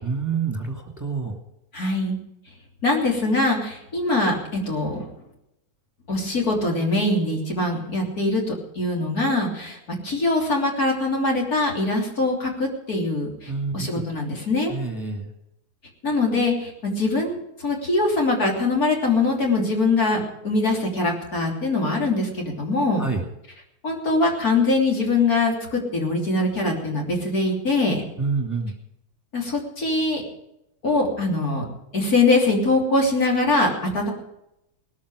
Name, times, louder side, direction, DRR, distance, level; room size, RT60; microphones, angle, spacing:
voice 1, 0.0-1.4 13.5-13.7 14.7-15.3 23.0-23.2 28.2-28.7, right 4 dB, 10° right, 3 dB, 2.2 m, -27 dB
voice 2, 1.7-2.2 2.8-5.1 6.1-9.8 10.0-14.7 16.0-23.0 23.8-28.0 29.3-30.2 30.8-31.6 31.9-34.1, left 2 dB, 70° left, 0 dB, 3.7 m, -23 dB
18.5 x 13.5 x 5.0 m, 0.83 s
omnidirectional pair, 1.6 m